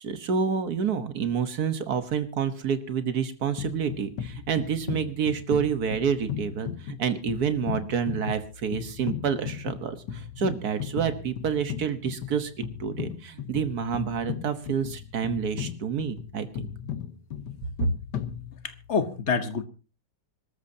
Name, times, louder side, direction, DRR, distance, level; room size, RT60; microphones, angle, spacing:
voice 1, 0.0-10.0 10.4-12.5 12.8-16.7 17.8-17.9, right 7 dB, 55° right, 10 dB, 1.7 m, -28 dB
sound 1, 3.6-19.0, left 9 dB, 70° left, 1.7 m, -37 dB
voice 2, 18.6-19.6, left 5 dB, 40° left, 10 dB, 1.3 m, -27 dB
26.0 x 13.5 x 2.8 m, 0.31 s
omnidirectional pair, 2.0 m